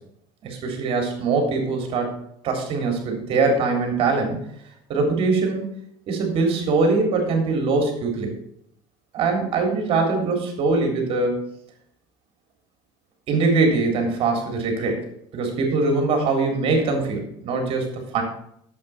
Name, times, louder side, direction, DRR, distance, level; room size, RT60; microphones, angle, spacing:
voice 1, 0.4-2.2 2.4-4.4 4.9-5.7 6.1-8.3 9.1-11.4 13.3-15.0 15.3-18.2, right 3 dB, 55° right, 3 dB, 3.6 m, -22 dB
8.7 x 7.9 x 6.0 m, 0.71 s
supercardioid pair, 100°, 11 cm